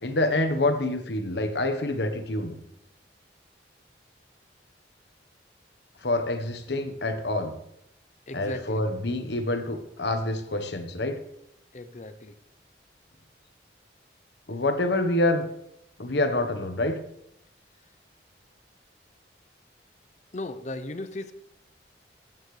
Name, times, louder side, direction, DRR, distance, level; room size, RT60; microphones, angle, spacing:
voice 1, 0.0-2.5 6.0-7.5 8.3-11.2 14.5-15.4 16.0-17.0, left 2 dB, 70° left, 6 dB, 1.2 m, -27 dB
voice 2, 8.3-8.8 11.7-12.3 20.3-21.3, left 2 dB, 40° left, 10 dB, 0.7 m, -36 dB
13.0 x 8.9 x 3.3 m, 0.78 s
head